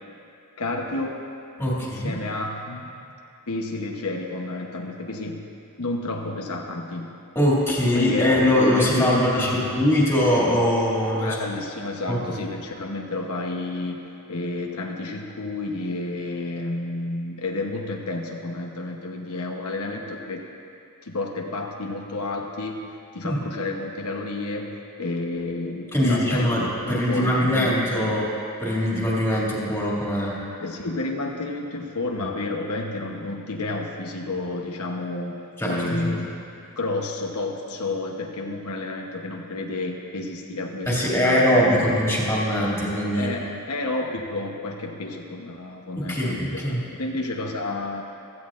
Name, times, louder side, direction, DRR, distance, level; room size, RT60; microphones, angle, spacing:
voice 1, 0.6-1.2 1.8-3.1 3.5-5.4 5.8-7.1 7.8-8.3 8.7-9.8 11.1-14.0 14.3-20.4 21.0-24.7 25.0-28.2 30.6-36.4 36.8-42.0 43.1-48.0, left 2 dB, 90° left, 1 dB, 1.0 m, -30 dB
voice 2, 1.6-2.2 7.3-11.4 12.1-12.4 23.2-23.6 25.9-28.3 28.6-30.4 35.6-36.2 40.8-43.3 45.9-46.9, left 1 dB, 10° left, -6 dB, 2.5 m, -22 dB
16.0 x 14.0 x 2.5 m, 2.6 s
head